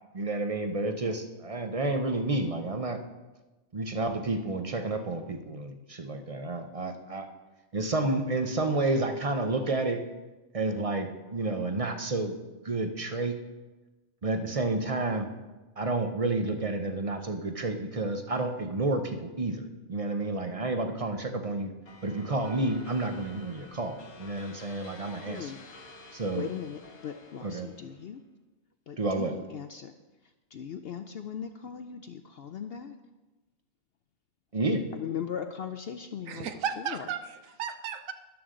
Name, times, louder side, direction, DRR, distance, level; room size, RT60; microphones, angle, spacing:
voice 1, 0.1-3.0 3.7-7.3 7.7-10.0 10.5-12.3 12.6-13.4 14.2-15.3 15.8-21.7 22.0-25.5 26.1-26.5 27.4-27.7 29.0-29.3 34.5-34.8, right 2 dB, 35° right, 7 dB, 0.6 m, -30 dB
sound 1, 21.9-28.1, left 2 dB, 85° left, 1.8 m, -50 dB
voice 2, 25.3-25.6 26.3-28.2 28.9-29.9 30.5-33.0 34.9-36.5 36.8-37.0, left 8 dB, 65° left, 8 dB, 0.6 m, -38 dB
voice 3, 36.3-38.1, right 8 dB, 70° right, 9 dB, 1.1 m, -34 dB
13.0 x 11.0 x 3.8 m, 1.1 s
omnidirectional pair, 1.5 m